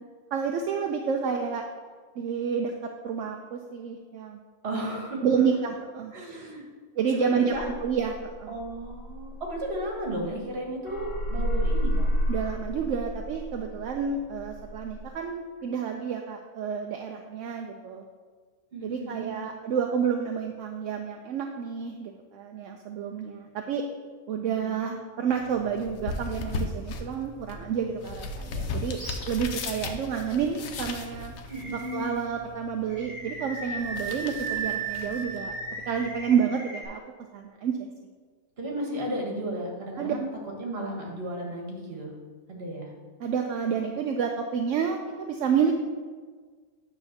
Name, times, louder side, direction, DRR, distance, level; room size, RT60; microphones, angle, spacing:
voice 1, 0.3-1.6 2.2-4.4 5.2-6.1 7.0-7.5 7.8-8.5 12.3-18.1 18.8-23.8 24.3-29.0 29.3-31.3 31.7-35.5 35.9-37.0 37.3-37.9 40.0-40.1 43.2-45.7, right 7 dB, 75° right, 3 dB, 0.9 m, -29 dB
voice 2, 4.6-5.2 6.1-6.7 7.1-7.6 8.5-12.1 18.7-19.4 24.4-25.0 31.5-32.1 38.6-40.3 40.6-42.1 42.5-42.9, right 1 dB, 50° right, -1 dB, 1.7 m, -34 dB
sound 1, 7.5-10.6 10.9-15.1, equal, 70° left, 1.2 m, -31 dB
sound 2, 25.3-36.3, left 3 dB, 90° left, 1.2 m, -38 dB
Animal, 28.9-29.3 29.7-29.9 31.5-32.2 32.9-36.8, right 4 dB, 15° right, 1.8 m, -36 dB
9.3 x 3.5 x 6.5 m, 1.5 s
omnidirectional pair, 1.4 m